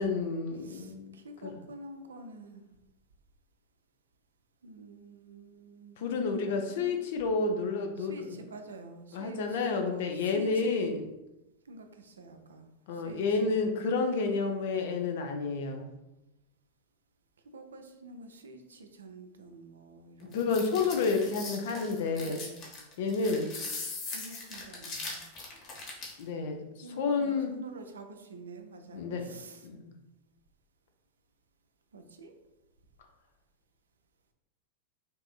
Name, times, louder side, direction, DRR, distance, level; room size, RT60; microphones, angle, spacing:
voice 1, 0.0-1.5 6.0-8.4 9.1-11.0 12.9-15.9 20.3-22.4 23.0-23.5 26.2-26.6 27.0-27.5 28.9-29.4 29.6-29.9, left 4 dB, 55° left, 4 dB, 0.6 m, -30 dB
voice 2, 0.6-2.6 4.6-6.0 6.4-6.9 8.0-10.9 11.7-12.7 12.9-13.9 17.5-21.2 22.2-22.6 24.1-25.2 26.8-29.7 31.9-32.3, right 2 dB, 70° right, 6 dB, 0.5 m, -47 dB
sound 1, 20.3-26.2, left 3 dB, 40° left, 1.1 m, -40 dB
5.3 x 2.6 x 2.3 m, 0.94 s
figure-of-eight pair, 90°, 0 cm